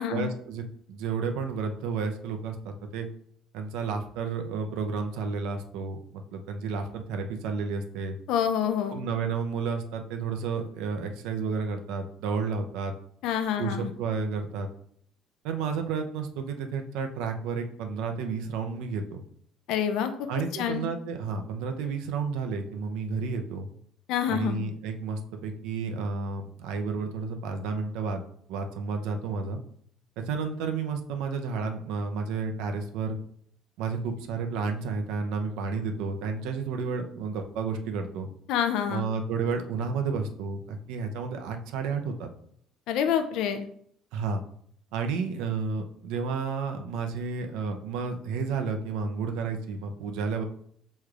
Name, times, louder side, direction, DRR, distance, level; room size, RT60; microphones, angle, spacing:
voice 1, 0.1-2.6 2.9-3.1 3.5-6.0 6.3-8.2 8.9-12.9 13.6-14.7 15.4-19.2 20.3-23.7 24.3-28.2 28.5-29.6 30.2-33.2 33.8-38.3 38.9-42.3 44.1-44.4 44.9-50.4, right 5 dB, 75° right, 5 dB, 0.6 m, -31 dB
voice 2, 8.3-9.0 13.2-13.9 19.7-20.3 20.6-20.9 24.1-24.6 38.5-39.0 42.9-43.7, left 9 dB, 60° left, 8 dB, 0.4 m, -27 dB
6.4 x 3.1 x 2.4 m, 0.64 s
cardioid pair, 180°, 0 cm